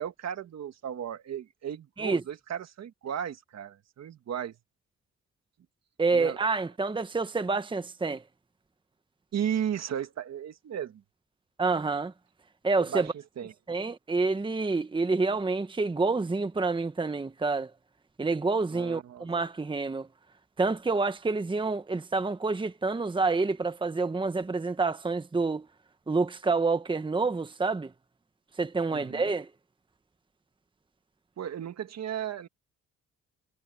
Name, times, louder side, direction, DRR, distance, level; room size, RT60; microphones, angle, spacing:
voice 1, 0.0-4.6 6.1-6.4 9.3-11.0 12.8-13.5 18.7-19.3 28.9-29.3 31.4-32.5, right 9 dB, 60° right, 2.0 m, -35 dB
voice 2, 6.0-8.2 11.6-12.1 12.6-13.1 13.7-17.7 18.2-20.1 20.6-25.7 26.1-27.9 28.6-29.5, right 3 dB, 15° right, 1.1 m, -28 dB
cardioid pair, 90°, 30 cm